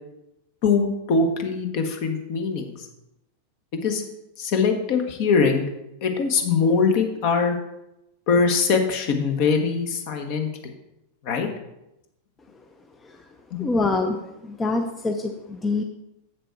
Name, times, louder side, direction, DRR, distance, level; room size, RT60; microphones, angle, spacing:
voice 1, 0.6-2.7 3.8-4.0 4.4-5.6 6.0-7.6 8.3-10.7 11.2-11.5 13.5-13.6, left 5 dB, 45° left, 5 dB, 1.2 m, -22 dB
voice 2, 13.6-14.2 14.4-15.8, left 3 dB, 15° left, 4 dB, 0.6 m, -25 dB
7.6 x 6.8 x 4.5 m, 0.89 s
figure-of-eight pair, 90°, 0 cm